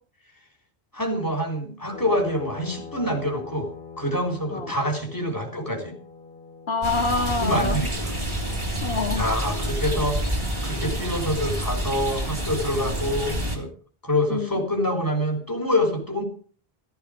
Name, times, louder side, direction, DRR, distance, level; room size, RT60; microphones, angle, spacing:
voice 1, 0.9-3.7 4.0-5.9 7.4-8.2 9.1-13.7 14.0-16.2, left 1 dB, 20° left, 2 dB, 3.9 m, -26 dB
sound 1, 1.9-7.7, left 5 dB, 60° left, 4.4 m, -42 dB
voice 2, 6.7-7.8 8.8-9.3 14.3-14.5, left 4 dB, 85° left, 4 dB, 2.2 m, -26 dB
sound 2, 6.8-13.6, right 1 dB, 25° right, 3.3 m, -28 dB
15.0 x 14.0 x 5.1 m, 0.43 s
omnidirectional pair, 1.0 m